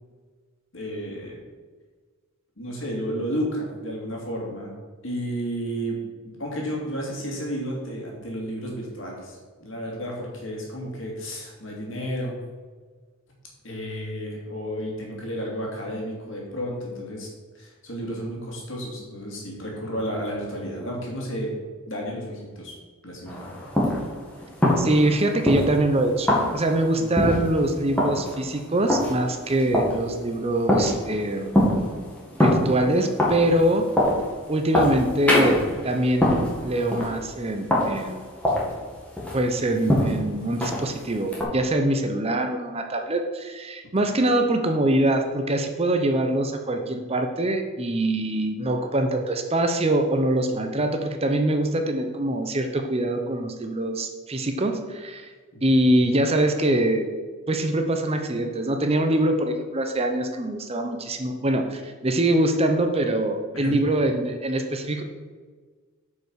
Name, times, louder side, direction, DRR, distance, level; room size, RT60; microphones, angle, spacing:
voice 1, 0.7-1.4 2.6-4.7 5.0-6.0 6.2-12.4 13.6-21.5 21.9-22.7 23.0-23.6 27.0-27.1 55.7-55.9 63.5-64.0, equal, 60° left, -2 dB, 2.6 m, -32 dB
sound 1, 23.3-41.4, left 1 dB, 5° left, 1.9 m, -25 dB
voice 2, 24.8-31.6 32.4-33.9 34.5-38.2 39.3-55.3 55.6-57.1 57.5-65.0, right 1 dB, 30° right, 5 dB, 0.7 m, -24 dB
8.4 x 5.4 x 6.3 m, 1.5 s
head